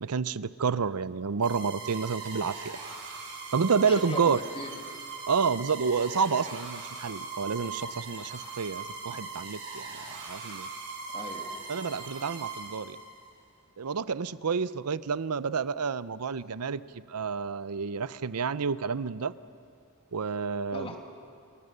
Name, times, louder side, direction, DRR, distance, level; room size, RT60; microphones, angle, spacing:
voice 1, 0.0-2.8 3.5-4.4 5.3-9.9 10.3-10.7 11.7-13.0 13.8-19.3 20.1-20.9, right 5 dB, 90° right, 16 dB, 0.6 m, -29 dB
sound 1, 1.4-13.2, right 4 dB, 55° right, 6.0 m, -40 dB
voice 2, 3.8-4.7 11.1-11.5 20.7-21.0, left 1 dB, 25° left, 2 dB, 2.6 m, -39 dB
28.5 x 23.5 x 6.7 m, 2.3 s
head